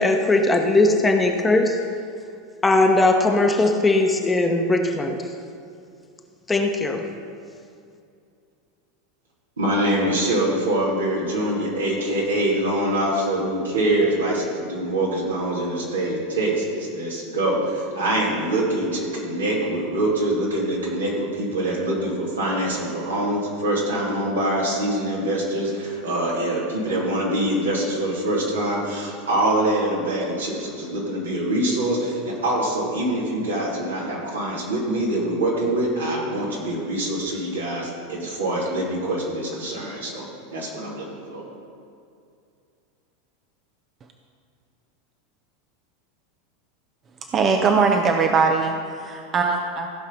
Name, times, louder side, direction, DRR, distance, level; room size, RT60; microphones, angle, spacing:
voice 1, 0.0-1.8 2.6-5.2 6.5-7.0, left 2 dB, 15° left, 3 dB, 1.1 m, -19 dB
voice 2, 9.6-41.4, right 1 dB, 85° right, -5 dB, 2.9 m, -24 dB
voice 3, 47.3-49.9, right 5 dB, 35° right, 3 dB, 0.8 m, -21 dB
15.5 x 5.5 x 5.4 m, 2.4 s
hypercardioid pair, 90°, 0 cm